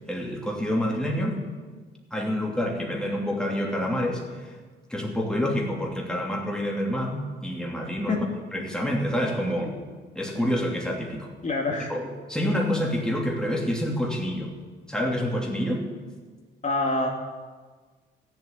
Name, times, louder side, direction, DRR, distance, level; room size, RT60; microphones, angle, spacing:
voice 1, 0.1-1.4 2.1-4.5 4.9-8.2 8.5-9.7 10.1-11.3 11.9-14.5 14.9-15.9, equal, 5° left, -1 dB, 2.9 m, -27 dB
voice 2, 11.4-11.9 16.6-17.1, left 2 dB, 35° left, 0 dB, 2.3 m, -25 dB
14.5 x 7.3 x 9.7 m, 1.4 s
cardioid pair, 90°, 20 cm